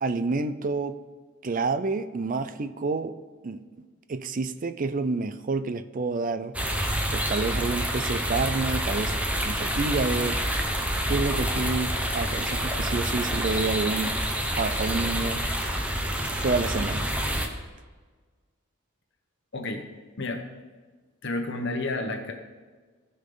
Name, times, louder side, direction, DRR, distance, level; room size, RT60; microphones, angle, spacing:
voice 1, 0.0-1.0 1.4-3.2 3.4-3.6 4.1-6.6 7.1-9.2 9.4-10.4 11.1-14.2 14.6-15.4 16.4-17.1, right 3 dB, 40° right, 11 dB, 0.5 m, -28 dB
sound 1, 6.5-17.5, equal, 5° right, 0.8 m, -28 dB
voice 2, 19.5-19.9 20.2-20.4 21.2-22.3, left 2 dB, 55° left, 4 dB, 1.1 m, -30 dB
16.5 x 5.5 x 3.9 m, 1.4 s
head